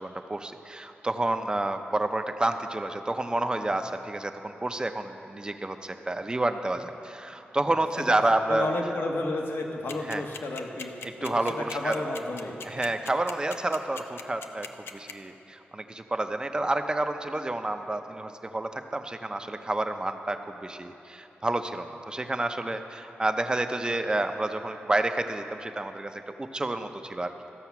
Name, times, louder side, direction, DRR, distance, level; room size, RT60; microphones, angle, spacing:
voice 1, 0.0-8.7 10.1-10.2 11.0-11.9 12.6-14.7 14.9-27.3, right 2 dB, 20° right, 7 dB, 0.6 m, -29 dB
voice 2, 8.5-10.9 11.2-12.5, left 2 dB, 75° left, 1 dB, 1.3 m, -32 dB
sound 1, 9.9-15.1, left 5 dB, 90° left, 0.5 m, -39 dB
14.0 x 7.1 x 5.9 m, 3.0 s
wide cardioid pair, 90°, 4 cm